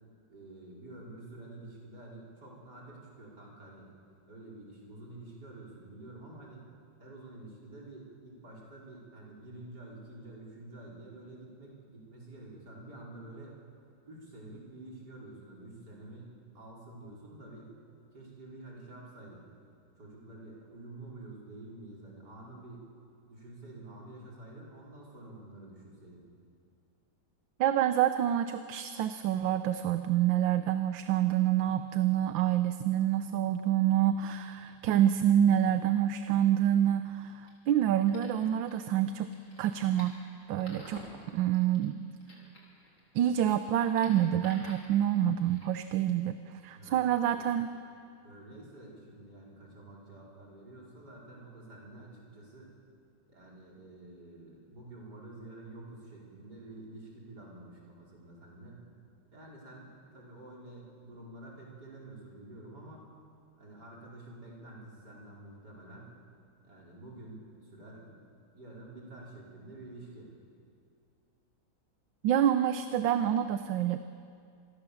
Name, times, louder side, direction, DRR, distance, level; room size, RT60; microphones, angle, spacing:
voice 1, 0.3-3.9 4.3-6.7 7.0-13.5 14.0-17.7 18.1-19.5 20.0-22.9 23.3-26.2 46.7-47.0 47.3-47.5 47.7-47.8 48.2-52.7 53.3-58.8 59.3-63.1 63.6-66.1 66.6-68.2 68.5-70.3, right 2 dB, 55° right, -4 dB, 5.5 m, -49 dB
voice 2, 27.6-39.3 39.6-40.2 40.5-41.0 41.3-42.0 43.1-47.7 72.2-74.0, right 11 dB, 75° right, 9 dB, 1.5 m, -27 dB
sound 1, 37.3-45.8, left 2 dB, 80° left, 4.9 m, -54 dB
26.5 x 20.5 x 7.1 m, 2.4 s
omnidirectional pair, 2.2 m